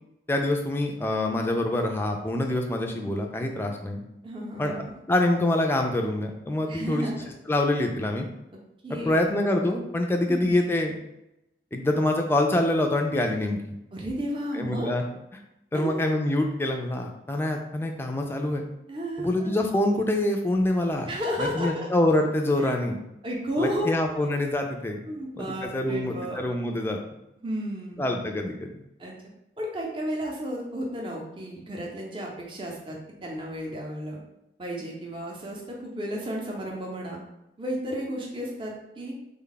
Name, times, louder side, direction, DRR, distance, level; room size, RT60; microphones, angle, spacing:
voice 1, 0.3-4.0 4.6-4.7 5.1-7.1 7.5-8.3 8.9-11.0 11.7-13.7 14.5-15.0 15.7-18.6 19.2-21.1 21.4-23.0 23.6-25.0 25.5-27.0 28.0-28.7, left 1 dB, 15° left, 3 dB, 0.3 m, -25 dB
voice 2, 4.2-5.0 6.7-7.3 8.8-9.3 10.3-10.5 13.9-14.9 15.7-16.0 18.9-19.5 21.0-21.9 22.6-22.7 23.2-24.2 25.1-26.4 27.4-28.1 29.0-29.1 29.6-34.2 34.6-37.2 37.6-39.2, equal, 30° right, -2 dB, 0.6 m, -33 dB
3.5 x 2.2 x 3.9 m, 0.87 s
head